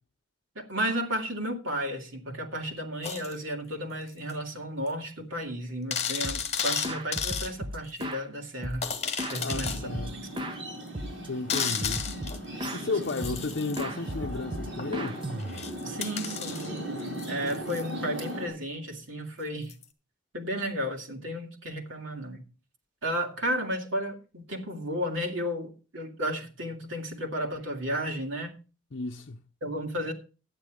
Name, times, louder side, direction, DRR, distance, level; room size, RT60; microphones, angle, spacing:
voice 1, 0.5-8.8 9.3-10.5 12.1-12.2 15.8-16.9 17.3-19.7 20.3-22.4 23.0-28.5 29.6-30.1, equal, 90° right, 2.6 m, -33 dB
sound 1, 3.0-3.4 4.3-4.4 4.9-5.0 5.2-5.3 5.9-7.5 8.0-8.1 8.8-9.8 10.4-10.5 11.5-12.4 13.0-13.8 14.8-17.9 19.7-19.8, left 7 dB, 35° left, 1.5 m, -33 dB
sound 2, 6.2-6.6 6.8-8.3 8.6-10.6 10.9-11.3 11.5-12.8 13.2-13.5 13.8-15.8, equal, 25° right, 0.9 m, -36 dB
voice 2, 9.4-10.1 11.3-12.1 12.7-15.3 28.9-29.4, left 3 dB, 60° left, 0.7 m, -33 dB
sound 3, 9.5-18.5, right 1 dB, 70° right, 6.6 m, -38 dB
11.5 x 9.5 x 5.0 m
head